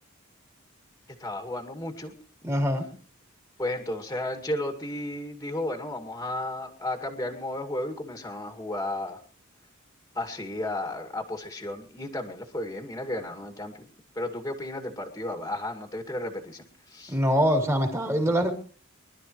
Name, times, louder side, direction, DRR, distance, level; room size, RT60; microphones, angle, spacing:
voice 1, 1.2-2.1 3.6-9.2 10.1-13.9 14.1-17.2, left 1 dB, 15° left, 4 dB, 2.2 m, -33 dB
voice 2, 2.4-2.9 17.1-18.5, equal, 15° right, 3 dB, 3.2 m, -24 dB
25.5 x 12.5 x 3.1 m, 0.39 s
head